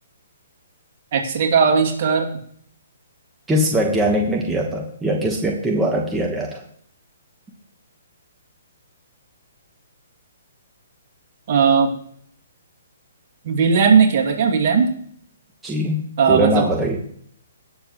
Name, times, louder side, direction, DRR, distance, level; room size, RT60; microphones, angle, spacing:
voice 1, 1.1-2.3 11.5-11.9 13.4-14.9 16.2-16.6, right 6 dB, 50° right, 0 dB, 2.5 m, -17 dB
voice 2, 3.5-6.6 15.6-17.0, right 1 dB, 10° right, 0 dB, 1.2 m, -21 dB
17.5 x 6.9 x 3.1 m, 0.62 s
hypercardioid pair, 140°, 0 cm